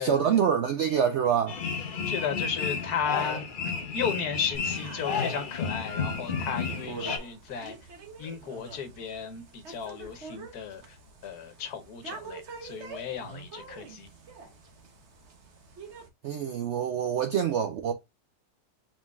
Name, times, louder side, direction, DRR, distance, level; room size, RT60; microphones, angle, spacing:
voice 1, 0.0-1.6 16.2-17.9, right 8 dB, 70° right, 0.6 m, -26 dB
sound 1, 1.5-7.2, left 5 dB, 50° left, 0.6 m, -32 dB
voice 2, 2.0-3.5 3.9-7.7 8.2-11.0 11.2-14.1, left 7 dB, 75° left, 1.4 m, -34 dB
sound 2, 4.5-16.1, right 4 dB, 50° right, 1.2 m, -46 dB
4.8 x 3.8 x 2.3 m
omnidirectional pair, 1.7 m